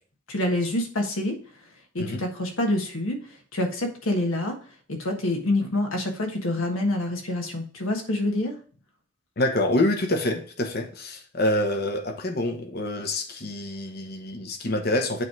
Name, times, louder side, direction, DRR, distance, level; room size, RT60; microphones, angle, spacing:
voice 1, 0.3-1.7 1.9-4.6 4.9-8.5, left 1 dB, 80° left, 1.4 m, -27 dB
voice 2, 9.4-15.2, left 1 dB, 50° left, 1.0 m, -26 dB
8.3 x 3.2 x 4.6 m
head